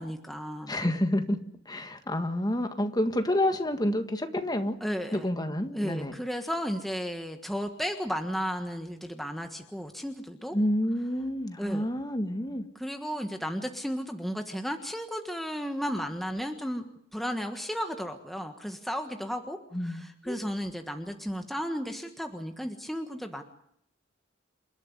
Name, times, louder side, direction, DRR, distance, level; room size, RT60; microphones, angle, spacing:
voice 1, 0.0-0.8 4.8-5.3 5.7-10.6 11.6-11.8 12.7-16.8 17.1-23.4, equal, ahead, 5 dB, 1.4 m, -34 dB
voice 2, 0.7-4.8 5.1-6.1 10.5-12.7 19.7-20.4, left 1 dB, 20° left, 7 dB, 1.8 m, -29 dB
29.0 x 12.0 x 9.8 m, 0.72 s
head